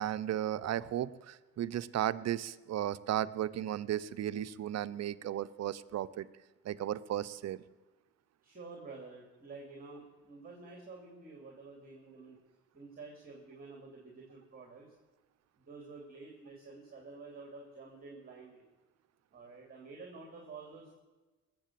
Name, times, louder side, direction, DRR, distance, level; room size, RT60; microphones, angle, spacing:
voice 1, 0.0-6.3 6.6-7.6, right 11 dB, 60° right, 15 dB, 0.6 m, -35 dB
voice 2, 8.4-12.4 12.7-14.9 15.6-18.6 19.3-21.0, right 3 dB, 30° right, 0 dB, 3.0 m, -50 dB
20.0 x 7.6 x 7.6 m, 1.2 s
cardioid pair, 90°, 30 cm